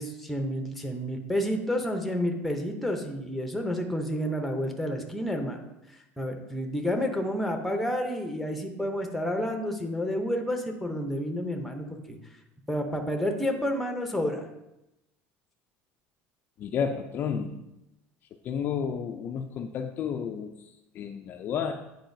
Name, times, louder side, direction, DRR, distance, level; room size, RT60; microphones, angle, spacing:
voice 1, 0.0-5.6 6.2-12.2 12.7-14.4, equal, ahead, 3 dB, 0.6 m, -30 dB
voice 2, 16.6-17.6 18.4-21.7, left 7 dB, 35° left, 4 dB, 0.3 m, -31 dB
9.1 x 4.6 x 2.6 m, 0.91 s
cardioid pair, 160°, 6 cm